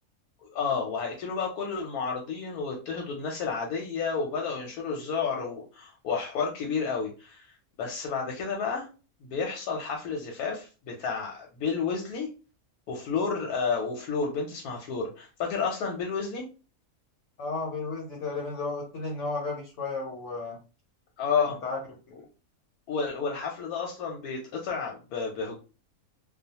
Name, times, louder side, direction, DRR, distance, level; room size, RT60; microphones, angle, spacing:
voice 1, 0.4-8.9 9.2-12.3 12.9-16.4 21.2-21.6 22.9-25.6, left 5 dB, 85° left, 0 dB, 1.1 m, -31 dB
voice 2, 17.4-20.6 21.6-21.8 22.1-22.2, left 3 dB, 60° left, -1 dB, 1.0 m, -33 dB
2.3 x 2.3 x 2.8 m, 0.34 s
omnidirectional pair, 1.5 m